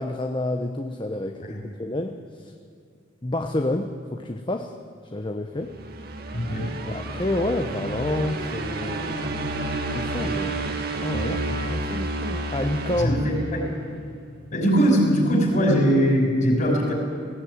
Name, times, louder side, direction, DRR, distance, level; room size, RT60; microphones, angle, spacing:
voice 1, 0.0-2.5 3.2-4.8 5.1-5.8 6.9-9.2 9.9-10.7 11.0-13.2, left 1 dB, 25° left, 6 dB, 0.8 m, -29 dB
sound 1, 5.6-13.9, right 2 dB, 50° right, 1.8 m, -30 dB
voice 2, 6.3-6.7 13.0-13.6 14.5-16.9, equal, 40° left, 0 dB, 5.6 m, -21 dB
18.5 x 16.5 x 9.5 m, 2.3 s
head